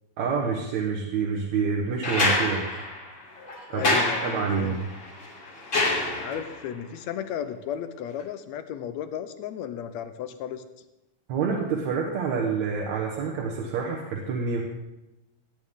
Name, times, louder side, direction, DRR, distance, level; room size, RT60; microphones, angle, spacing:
voice 1, 0.2-2.7 3.7-4.9 11.3-14.6, right 5 dB, 70° right, -1 dB, 2.4 m, -27 dB
sound 1, 2.0-6.6 8.2-8.3, left 2 dB, 40° left, 3.3 m, -27 dB
voice 2, 3.7-4.8 6.2-10.6, left 9 dB, 75° left, 10 dB, 1.8 m, -34 dB
17.5 x 9.1 x 3.7 m, 0.95 s
omnidirectional pair, 3.5 m